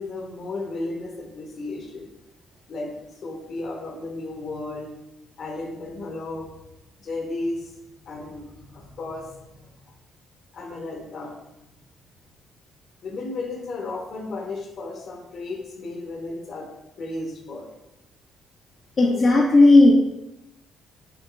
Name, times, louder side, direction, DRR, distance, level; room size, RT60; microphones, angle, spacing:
voice 1, 0.0-2.1 2.7-2.9 3.2-4.9 5.4-6.5 7.0-7.7 8.1-9.9 10.5-11.3 13.0-16.7 17.0-17.7, left 2 dB, 60° left, 2 dB, 0.8 m, -34 dB
voice 2, 19.0-19.9, left 2 dB, 40° left, -2 dB, 0.5 m, -14 dB
4.6 x 3.0 x 2.5 m, 0.92 s
supercardioid pair, 70°, 0 cm